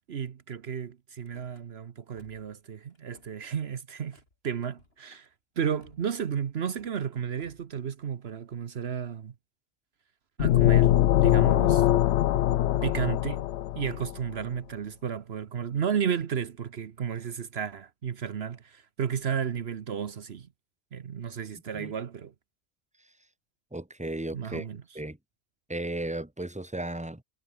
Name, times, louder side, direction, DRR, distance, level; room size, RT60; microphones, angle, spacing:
voice 1, 0.1-5.3 5.6-9.3 10.4-10.9 11.2-11.9 12.8-13.4 13.7-20.5 20.9-22.3 24.3-24.8, right 7 dB, 70° right, 1.2 m, -33 dB
Car / Slam, 1.2-1.6 2.1-2.6 2.9-3.5 4.1-4.4 4.7-5.3 5.8-6.2 6.7-7.1 7.4-7.8, left 2 dB, 65° left, 4.1 m, -60 dB
sound 1, 10.4-14.1, left 13 dB, 85° left, 0.9 m, -22 dB
voice 2, 23.7-24.7 24.9-25.2 25.7-27.2, right 1 dB, 5° right, 1.7 m, -35 dB
omnidirectional pair, 1.1 m